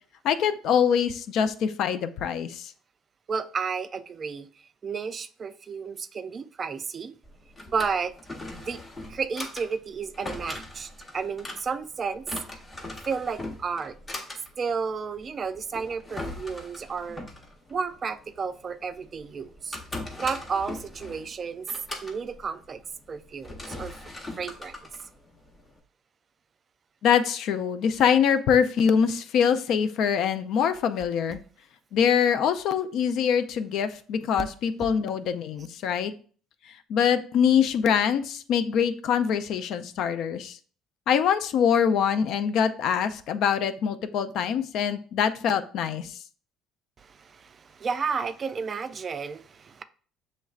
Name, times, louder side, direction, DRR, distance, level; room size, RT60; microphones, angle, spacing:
voice 1, 0.2-2.7 27.0-31.4 31.9-36.1 36.9-40.6 41.1-46.2, left 7 dB, 60° left, 0.4 m, -24 dB
voice 2, 3.3-4.5 4.8-7.2 7.7-8.1 8.6-8.8 9.1-12.3 13.1-14.0 14.6-17.3 17.7-19.8 20.2-21.7 22.0-22.8 23.1-23.9 24.4-24.8 34.4-34.5 34.8-34.9 47.0-49.8, right 5 dB, 30° right, 0.3 m, -32 dB
Drawer open or close, 7.2-25.8, left 1 dB, 20° left, 0.8 m, -40 dB
7.1 x 3.1 x 2.4 m
cardioid pair, 135°, 0 cm